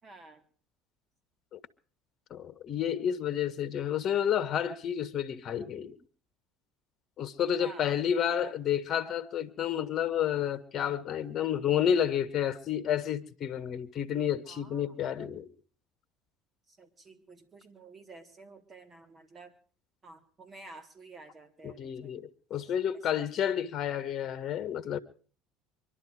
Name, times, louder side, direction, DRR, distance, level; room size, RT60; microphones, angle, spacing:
voice 1, 0.0-0.4 7.6-8.6 14.5-15.0 16.7-19.5 20.0-22.2 23.1-23.3, right 2 dB, 30° right, 3.8 m, -51 dB
voice 2, 2.3-6.0 7.2-15.5 21.6-25.0, left 9 dB, 50° left, 1.3 m, -30 dB
24.5 x 12.0 x 4.8 m
hypercardioid pair, 75°, 0 cm